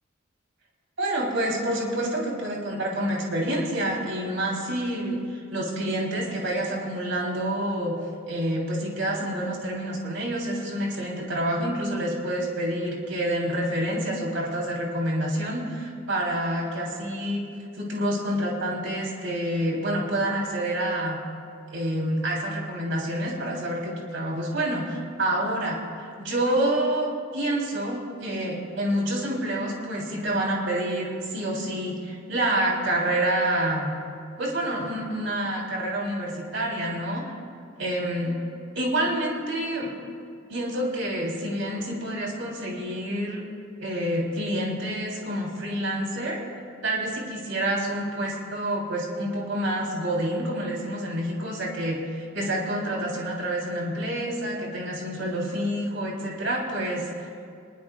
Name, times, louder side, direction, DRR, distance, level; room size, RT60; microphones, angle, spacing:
voice 1, 1.0-8.0 8.3-17.5 17.8-21.2 21.7-25.8 26.2-33.9 34.4-37.3 37.8-38.4 38.7-39.9 40.5-43.4 43.8-46.4 46.8-57.0, right 1 dB, 65° right, -2 dB, 3.4 m, -28 dB
26.0 x 21.0 x 2.4 m, 2.3 s
head